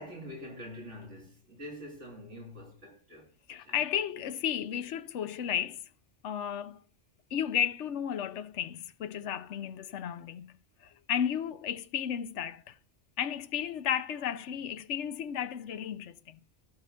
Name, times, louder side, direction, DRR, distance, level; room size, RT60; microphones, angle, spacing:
voice 1, 0.0-3.8, equal, 80° right, 3.8 m, -45 dB
voice 2, 3.5-5.8 6.2-6.8 7.3-10.5 10.8-12.7 13.2-16.4, left 9 dB, 75° left, 1.1 m, -33 dB
13.5 x 5.8 x 6.2 m
omnidirectional pair, 1.2 m